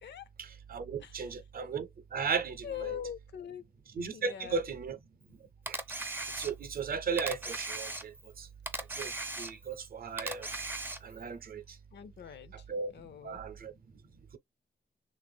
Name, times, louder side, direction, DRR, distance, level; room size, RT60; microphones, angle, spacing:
voice 1, 0.4-3.0 3.9-5.0 5.7-5.8 6.4-8.5 8.9-9.1 9.4-10.5 11.0-11.6 12.7-12.9 13.2-13.7, right 5 dB, 55° right, 0.6 m, -36 dB
voice 2, 2.6-3.6 4.1-4.6 11.9-12.5 12.9-13.4, left 9 dB, 70° left, 0.5 m, -42 dB
Camera, 5.7-6.8 7.2-8.3 8.7-9.8 10.2-11.2, right 2 dB, 10° right, 0.4 m, -38 dB
3.3 x 2.4 x 3.4 m
wide cardioid pair, 165°, 18 cm